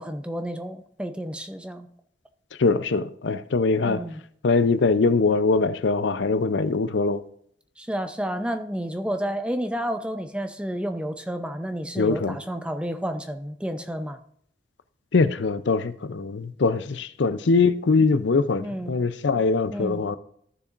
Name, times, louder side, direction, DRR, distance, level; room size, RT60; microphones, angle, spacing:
voice 1, 0.0-1.9 3.8-4.2 7.8-14.2 18.6-18.9 19.7-20.1, equal, 5° right, 0.5 m, -31 dB
voice 2, 2.6-4.0 4.4-7.2 12.0-12.4 15.1-20.2, left 4 dB, 75° left, 0.5 m, -22 dB
14.5 x 6.7 x 2.5 m
head